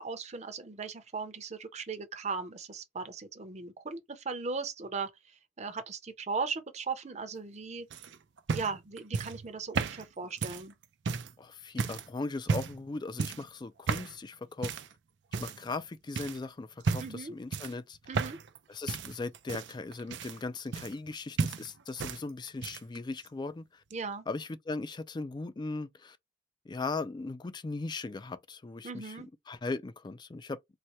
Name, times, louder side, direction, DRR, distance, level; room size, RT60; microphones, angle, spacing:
voice 1, 0.0-7.9 8.5-10.7 17.0-17.3 18.1-18.4 23.9-24.3 28.8-29.3, right 4 dB, 40° right, 0.7 m, -38 dB
sound 1, 7.9-11.3 11.8-12.1 12.4-12.8 13.2-13.5 13.9-14.2 14.6-14.9 15.3-15.8 16.2-16.4 16.8-17.2 17.5-18.6 18.9-21.1 21.4-22.2 22.5-23.0 23.9-24.0, right 5 dB, 80° right, 0.5 m, -33 dB
voice 2, 11.4-14.8 15.4-18.0 18.7-23.8 24.3-26.2 26.7-30.6, left 3 dB, 25° left, 0.4 m, -38 dB
4.1 x 2.1 x 3.0 m
head